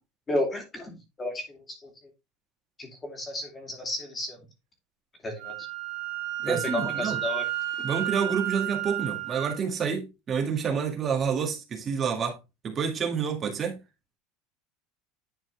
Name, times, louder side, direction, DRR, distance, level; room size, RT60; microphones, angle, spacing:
voice 1, 0.3-1.9 2.8-4.4 5.2-5.5 6.5-7.5, left 1 dB, 15° left, 2.5 m, -32 dB
Wind instrument woodwind instrument, 5.4-9.6, right 14 dB, 80° right, 2.2 m, -32 dB
voice 2, 6.4-7.2 7.8-12.4 12.6-13.8, right 6 dB, 25° right, 1.8 m, -28 dB
10.5 x 4.3 x 3.3 m
cardioid pair, 155°, 0 cm